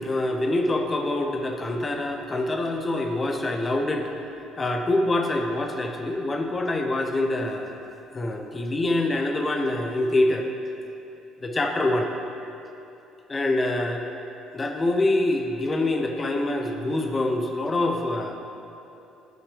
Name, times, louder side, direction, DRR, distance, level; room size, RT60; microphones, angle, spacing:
voice 1, 0.0-4.0 4.6-7.7 8.1-10.5 11.4-12.1 13.3-14.1 14.5-18.4, left 2 dB, 30° left, 3 dB, 0.8 m, -25 dB
13.0 x 5.8 x 3.3 m, 2.8 s
figure-of-eight pair, 50°, 0 cm